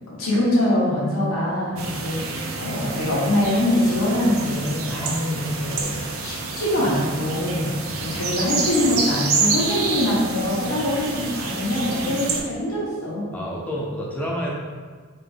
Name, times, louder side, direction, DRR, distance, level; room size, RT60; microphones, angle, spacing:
voice 1, 0.1-7.7 8.0-13.3, left 1 dB, 85° left, -6 dB, 1.2 m, -23 dB
sound 1, 1.8-12.4, right 4 dB, 90° right, 0.5 m, -28 dB
voice 2, 13.3-14.5, equal, 5° left, -4 dB, 0.6 m, -30 dB
4.0 x 2.6 x 3.4 m, 1.5 s
head